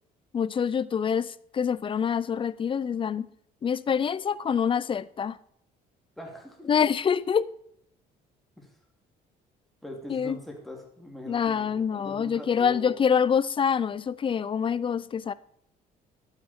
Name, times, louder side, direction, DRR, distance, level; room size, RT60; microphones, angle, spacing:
voice 1, 0.3-1.3 1.5-3.3 3.6-5.3 6.7-7.5 10.1-10.4 11.3-15.3, left 7 dB, 30° left, 0.4 m, -26 dB
voice 2, 6.2-6.7 8.6-8.7 9.8-12.9, left 1 dB, ahead, 2.8 m, -42 dB
11.5 x 8.9 x 4.4 m
cardioid pair, 110°, 17 cm